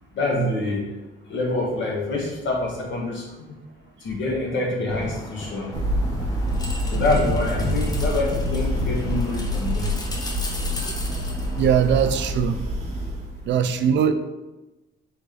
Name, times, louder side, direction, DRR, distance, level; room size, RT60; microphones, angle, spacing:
voice 1, 0.1-0.9 1.3-3.5 4.0-5.7 6.9-9.9 14.0-14.1, left 2 dB, 70° left, -1 dB, 1.4 m, -26 dB
sound 1, 4.9-12.3, left 1 dB, 20° left, 0.7 m, -33 dB
Thunder, 5.7-13.6, equal, 35° right, 1.1 m, -27 dB
voice 2, 10.8-11.3 11.5-12.6 13.4-14.1, right 8 dB, 65° right, 9 dB, 0.4 m, -22 dB
3.8 x 3.3 x 3.7 m, 1.0 s
cardioid pair, 90°, 20 cm